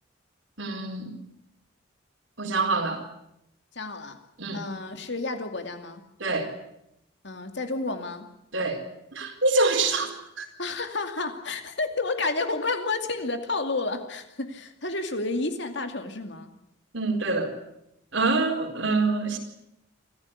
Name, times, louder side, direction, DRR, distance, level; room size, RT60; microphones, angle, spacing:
voice 1, 0.6-1.1 2.4-3.0 4.4-4.7 6.2-6.5 8.5-8.8 9.1-10.1 10.4-10.5 16.9-17.5 18.1-19.4, right 3 dB, 70° right, 4 dB, 4.4 m, -25 dB
voice 2, 3.7-4.2 4.5-6.0 7.2-8.3 10.6-16.5, left 3 dB, 60° left, 7 dB, 2.4 m, -30 dB
26.0 x 15.0 x 9.6 m, 0.82 s
head